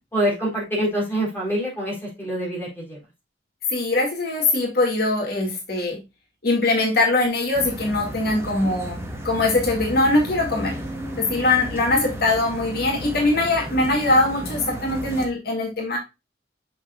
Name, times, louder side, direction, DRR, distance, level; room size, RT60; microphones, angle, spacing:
voice 1, 0.1-3.0, right 1 dB, 10° left, -3 dB, 4.2 m, -25 dB
voice 2, 3.7-6.0 6.4-10.8 11.2-16.0, left 2 dB, 55° left, 0 dB, 2.1 m, -22 dB
sound 1, 7.5-15.3, right 1 dB, 15° right, 1.2 m, -34 dB
6.9 x 6.2 x 2.4 m, 0.25 s
head